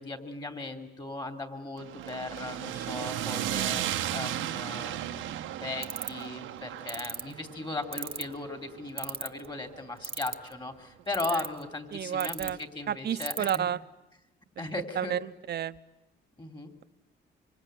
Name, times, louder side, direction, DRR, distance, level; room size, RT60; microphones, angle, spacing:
voice 1, 0.0-13.7 14.6-15.2 16.4-16.7, left 2 dB, 25° left, 6 dB, 3.3 m, -37 dB
sound 1, 1.8-10.0, right 12 dB, 90° right, 1.3 m, -35 dB
sound 2, 5.8-6.2 6.9-7.2 7.9-8.3 9.0-9.5 10.0-10.5 11.1-11.6 12.2-12.5 13.2-13.6, right 5 dB, 30° right, 1.1 m, -33 dB
voice 2, 11.9-12.6 12.9-13.8 15.0-15.8, right 9 dB, 55° right, 13 dB, 1.0 m, -31 dB
25.5 x 24.0 x 9.3 m, 0.95 s
cardioid pair, 90°, 20 cm